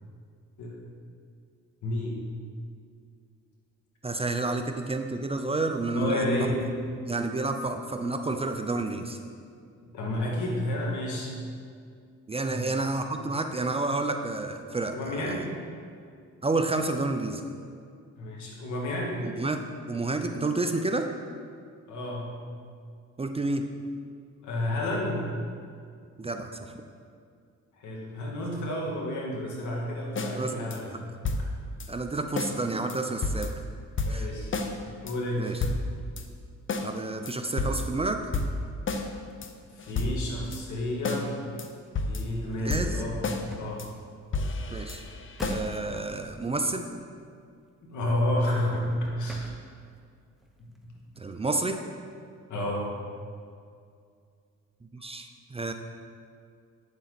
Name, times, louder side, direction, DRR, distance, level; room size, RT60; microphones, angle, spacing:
voice 1, 1.8-2.2 4.4-4.6 5.9-6.6 9.9-11.3 12.4-12.7 14.9-15.6 18.2-19.2 21.9-22.3 24.4-25.3 27.7-31.1 34.0-34.5 35.0-35.5 39.7-41.3 42.1-43.2 43.6-43.8 47.8-49.5 50.6-50.7 52.5-52.9, left 1 dB, 75° left, -2 dB, 2.3 m, -31 dB
voice 2, 4.0-6.5 7.1-9.2 12.3-15.4 16.4-17.4 19.2-21.1 23.2-23.7 26.2-26.7 30.3-31.0 31.9-33.6 34.1-34.3 35.4-35.6 36.8-38.3 42.6-43.0 44.7-45.0 45.5-46.9 51.2-51.8 54.9-55.7, right 2 dB, 20° right, 6 dB, 0.6 m, -30 dB
sound 1, 30.2-30.4 30.7-30.8 31.2-31.9 32.4-32.6 32.9-33.0 33.2-33.6 34.0-34.7 35.1-35.2 35.4-36.2 36.7-36.9 37.3-38.0 38.3-39.1 39.4-39.5 39.8-40.6 41.0-41.3 41.6-41.7 42.0-42.4 42.7-43.5 43.8-43.9 44.3-45.8, left 3 dB, 40° left, 0.8 m, -31 dB
sound 2, 39.3-48.6 48.9-50.1 50.4-51.9, right 1 dB, ahead, 1.1 m, -47 dB
9.2 x 7.2 x 4.1 m, 2.2 s
cardioid pair, 90°, 30 cm